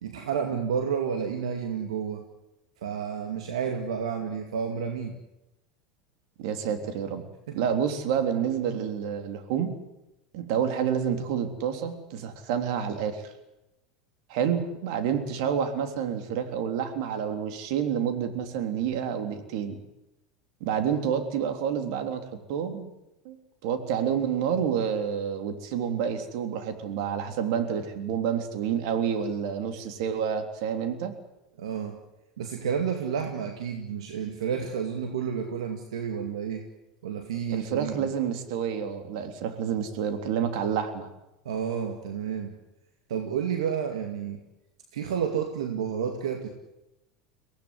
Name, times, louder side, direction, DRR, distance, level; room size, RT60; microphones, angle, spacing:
voice 1, 0.0-2.2 2.8-5.2 7.5-7.6 31.6-32.0 32.4-36.6 37.0-38.1 41.4-42.6 43.1-44.4 44.9-46.5, right 7 dB, 85° right, 5 dB, 2.3 m, -30 dB
voice 2, 6.4-7.2 7.5-9.7 10.3-13.3 14.3-19.7 20.6-22.9 23.2-23.3 23.6-31.1 37.5-41.1, right 8 dB, 70° right, 6 dB, 3.5 m, -29 dB
24.0 x 17.5 x 9.7 m, 0.93 s
hypercardioid pair, 95°, 3 cm